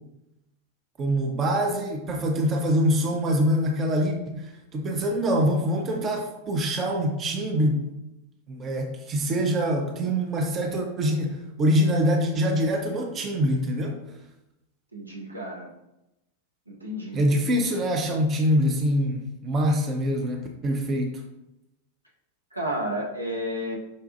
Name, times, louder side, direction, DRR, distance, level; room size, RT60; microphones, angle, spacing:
voice 1, 1.0-8.0 8.5-14.0 17.1-21.2, equal, 25° right, 2 dB, 0.5 m, -24 dB
voice 2, 14.9-15.7 16.7-17.2 22.5-23.8, equal, 85° right, -2 dB, 0.7 m, -31 dB
5.1 x 2.3 x 2.5 m, 0.90 s
figure-of-eight pair, 90°, 0 cm